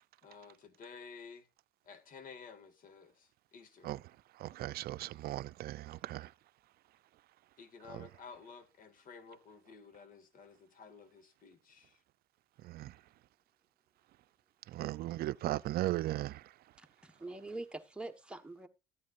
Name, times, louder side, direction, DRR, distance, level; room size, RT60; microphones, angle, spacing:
voice 1, 0.2-1.4 1.9-3.9 7.6-11.9, left 5 dB, 55° left, 2.1 m, -53 dB
voice 2, 4.4-6.3 7.9-8.0 12.6-12.9 14.7-16.4, right 15 dB, 65° right, 0.5 m, -37 dB
voice 3, 16.8-18.7, right 2 dB, 5° right, 1.3 m, -44 dB
14.0 x 9.5 x 2.5 m
cardioid pair, 110°, 17 cm